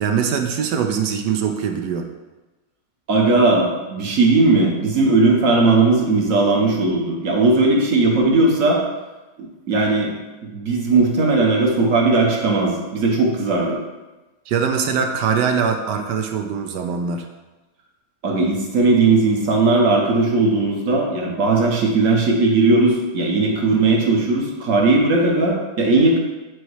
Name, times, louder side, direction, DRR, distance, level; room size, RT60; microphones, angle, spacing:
voice 1, 0.0-2.1 14.5-17.3, right 6 dB, 75° right, 5 dB, 1.2 m, -22 dB
voice 2, 3.1-8.8 9.4-10.1 10.5-13.8 18.2-26.2, right 3 dB, 50° right, 0 dB, 1.3 m, -17 dB
8.2 x 3.0 x 4.7 m, 1.1 s
omnidirectional pair, 2.0 m